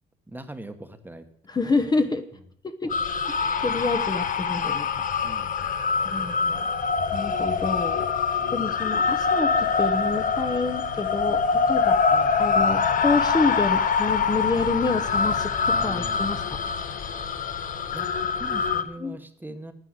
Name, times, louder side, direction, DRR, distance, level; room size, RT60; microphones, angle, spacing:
voice 1, 0.3-1.3 2.8-3.0 5.2-5.7 7.6-7.7 8.4-8.6 12.1-12.4 15.7-16.4 17.9-19.7, right 2 dB, 10° right, 9 dB, 1.2 m, -41 dB
voice 2, 1.5-2.2 2.6-3.2 3.4-4.9 6.0-6.7 7.1-12.0 12.4-16.6 19.0-19.2, left 3 dB, 20° left, 8 dB, 1.0 m, -28 dB
sound 1, 2.9-18.8, left 5 dB, 45° left, 1.1 m, -24 dB
9.8 x 9.1 x 8.0 m, 0.66 s
cardioid pair, 115°, 19 cm